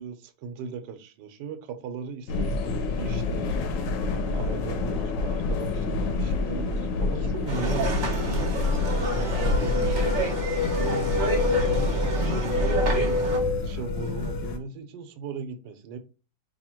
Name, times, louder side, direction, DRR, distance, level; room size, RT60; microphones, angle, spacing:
voice 1, 0.0-3.5 4.3-8.8 9.1-10.3 10.7-11.1 11.5-13.2 13.5-16.0, right 5 dB, 80° right, 7 dB, 1.3 m, -38 dB
sound 1, 2.3-14.6, left 3 dB, 85° left, 1.3 m, -26 dB
sound 2, 7.5-13.4, right 3 dB, 45° right, 0.6 m, -30 dB
2.9 x 2.8 x 4.3 m, 0.33 s
omnidirectional pair, 1.9 m